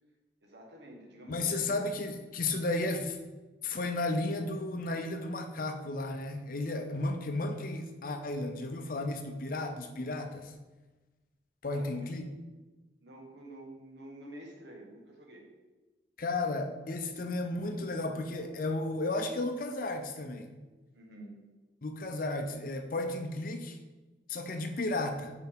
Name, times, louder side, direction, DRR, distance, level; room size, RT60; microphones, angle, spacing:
voice 1, 0.4-1.9 11.7-12.1 13.0-15.5 20.9-21.4 24.6-24.8, right 1 dB, 75° right, 0 dB, 1.4 m, -49 dB
voice 2, 1.3-3.2 3.6-10.5 11.6-12.3 16.2-20.5 21.8-23.8 24.3-25.3, left 2 dB, 50° left, 5 dB, 0.6 m, -33 dB
6.9 x 4.6 x 3.6 m, 1.2 s
head